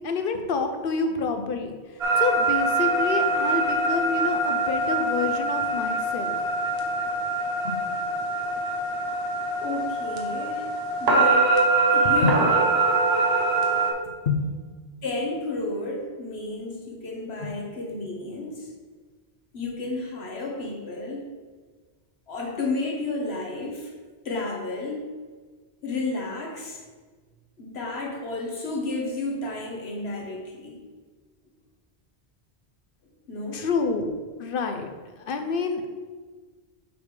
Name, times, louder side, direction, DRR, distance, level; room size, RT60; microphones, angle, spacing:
voice 1, 0.0-1.8 2.2-6.4 7.6-7.8 12.2-12.3 14.3-14.4 33.5-34.1 34.4-34.9 35.2-35.8, left 4 dB, 60° left, 6 dB, 0.8 m, -27 dB
sound 1, 2.0-13.9, right 3 dB, 75° right, 1.2 m, -24 dB
voice 2, 9.6-10.7 11.0-11.5 11.9-12.7 15.0-18.7 19.5-21.3 22.3-23.9 24.2-25.0 25.8-26.8 27.6-30.8 33.3-33.6, left 2 dB, 75° left, -1 dB, 1.5 m, -32 dB
7.1 x 3.5 x 4.9 m, 1.4 s
omnidirectional pair, 1.1 m